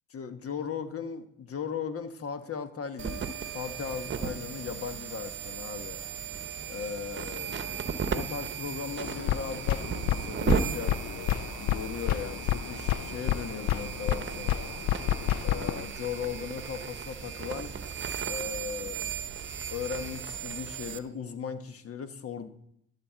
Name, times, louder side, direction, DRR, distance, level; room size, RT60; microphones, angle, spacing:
voice 1, 0.1-3.2 3.5-6.0 6.6-14.7 15.4-17.7 18.3-19.1 19.7-22.5, left 6 dB, 50° left, 9 dB, 1.2 m, -37 dB
sound 1, 3.0-21.0, right 6 dB, 40° right, 0.9 m, -36 dB
sound 2, 9.0-15.9, left 12 dB, 65° left, 0.4 m, -30 dB
12.0 x 4.3 x 7.4 m, 0.75 s
cardioid pair, 90°, 30 cm